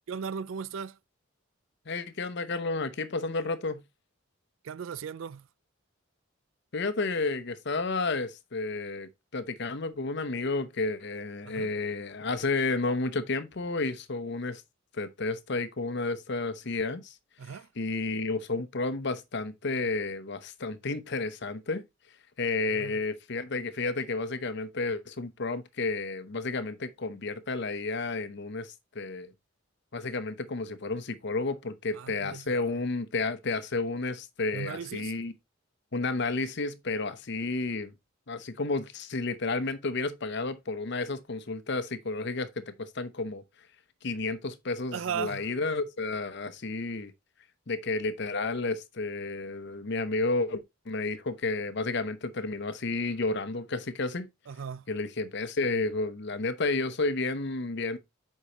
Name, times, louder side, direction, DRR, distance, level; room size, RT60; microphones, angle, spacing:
voice 1, 0.1-1.0 4.6-5.5 11.4-11.7 17.4-17.7 22.7-22.9 31.9-32.7 34.5-35.1 44.9-45.5 54.5-54.8, right 7 dB, 70° right, 0.4 m, -37 dB
voice 2, 1.9-3.8 6.7-14.6 14.9-17.2 17.4-21.8 22.4-29.3 29.9-35.3 35.9-37.9 38.3-43.4 44.0-47.1 47.7-54.3 54.9-58.0, left 3 dB, 55° left, 0.8 m, -31 dB
8.1 x 5.5 x 2.9 m
head